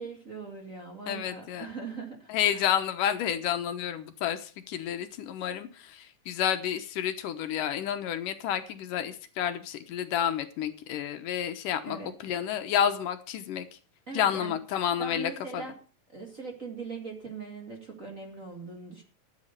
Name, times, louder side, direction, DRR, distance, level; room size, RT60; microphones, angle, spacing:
voice 1, 0.0-2.7 11.8-12.2 14.1-14.6 15.0-15.8 16.1-19.0, right 4 dB, 30° right, 2 dB, 2.0 m, -40 dB
voice 2, 1.1-1.7 2.3-12.0 12.2-13.7 14.1-15.6, left 9 dB, 75° left, 9 dB, 2.6 m, -30 dB
13.0 x 8.7 x 6.7 m, 0.39 s
omnidirectional pair, 3.9 m